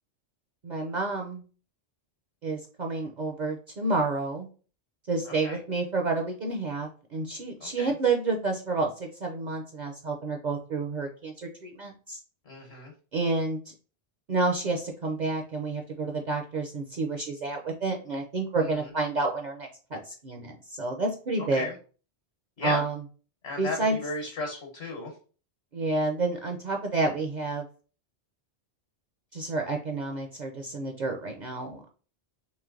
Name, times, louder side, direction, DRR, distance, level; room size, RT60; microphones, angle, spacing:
voice 1, 0.6-1.4 2.4-4.5 5.1-12.2 13.1-13.6 14.3-21.7 22.6-23.0 23.6-24.0 25.7-27.6 29.3-31.9, right 3 dB, 50° right, 2 dB, 0.6 m, -29 dB
voice 2, 7.6-7.9 12.5-12.9 18.6-18.8 21.6-21.7 22.6-22.8 23.4-25.1, left 3 dB, 65° left, 1 dB, 1.2 m, -34 dB
3.2 x 3.0 x 3.7 m, 0.38 s
omnidirectional pair, 1.1 m